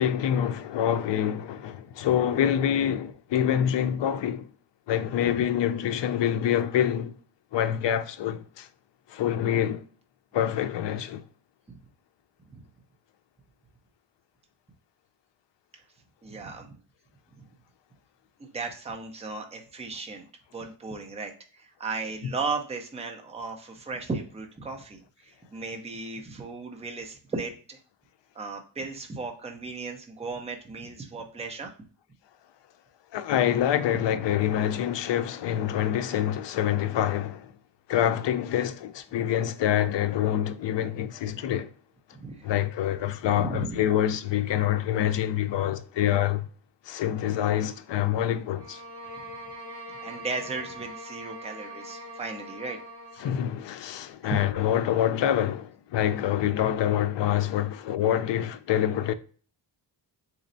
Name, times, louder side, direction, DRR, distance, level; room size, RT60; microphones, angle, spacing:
voice 1, 0.0-4.5 4.9-7.1 7.5-8.7 9.1-9.8 10.3-11.2 33.1-37.5 37.9-41.7 42.4-46.5 46.9-48.8 53.2-59.1, left 10 dB, 70° left, 0.5 m, -26 dB
voice 2, 16.2-16.7 18.4-20.3 20.5-27.8 28.4-31.7 42.1-42.5 43.3-43.8 50.0-52.8 54.2-54.4, right 4 dB, 15° right, 0.5 m, -36 dB
sound 1, 48.5-53.4, right 1 dB, 60° right, 1.8 m, -42 dB
3.9 x 3.1 x 2.6 m
wide cardioid pair, 165°, 46 cm